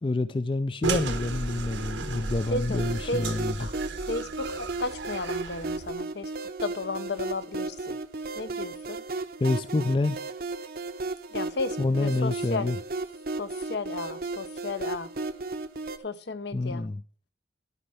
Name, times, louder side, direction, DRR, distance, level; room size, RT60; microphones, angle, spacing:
voice 1, 0.0-3.7 9.4-10.2 11.8-12.8 16.5-17.0, left 2 dB, 25° left, 0.4 m, -27 dB
sound 1, 0.8-5.9, right 3 dB, 85° right, 1.3 m, -34 dB
voice 2, 2.5-3.3 3.6-3.7 4.1-6.3 6.6-8.0 8.4-9.0 11.3-12.7 13.4-15.1 16.0-16.8, left 3 dB, 65° left, 0.8 m, -34 dB
sound 2, 2.7-16.0, right 3 dB, 50° right, 0.7 m, -35 dB
12.0 x 5.4 x 5.7 m
head